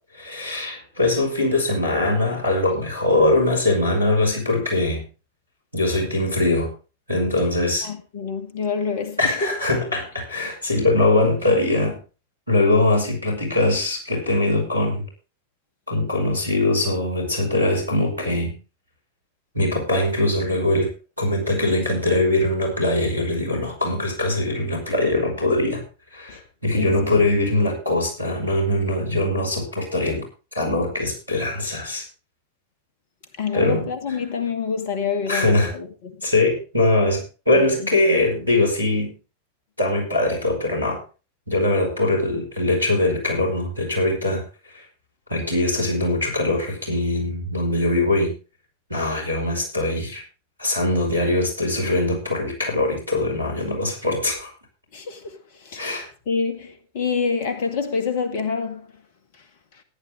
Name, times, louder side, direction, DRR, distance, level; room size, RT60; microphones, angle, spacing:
voice 1, 0.1-5.0 5.7-6.7 7.1-7.9 9.2-12.0 12.5-15.1 15.9-18.5 19.5-20.9 21.2-25.8 26.1-30.3 30.5-32.1 33.5-33.9 35.3-35.7 36.2-39.2 39.8-41.0 41.5-44.4 45.3-48.3 48.9-50.2 50.6-54.5 55.8-56.1, left 2 dB, 90° right, 5.5 m, -22 dB
voice 2, 7.8-9.5 26.3-26.4 26.7-27.3 33.4-36.2 37.6-37.9 54.9-55.9 56.3-58.9, left 5 dB, 50° left, 2.0 m, -27 dB
14.0 x 11.0 x 3.7 m
figure-of-eight pair, 90°, 0 cm